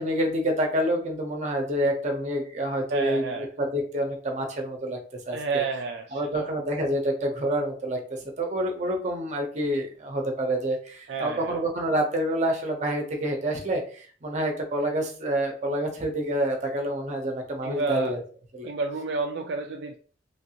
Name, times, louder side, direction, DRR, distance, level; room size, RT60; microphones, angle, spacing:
voice 1, 0.0-5.0 5.3-5.6 6.1-18.2 18.5-18.7, right 1 dB, 40° right, 2 dB, 0.7 m, -28 dB
voice 2, 2.9-3.5 5.3-6.5 11.1-11.6 17.6-18.1 18.6-20.0, right 4 dB, 60° right, 3 dB, 0.3 m, -30 dB
3.1 x 2.5 x 2.8 m, 0.42 s
head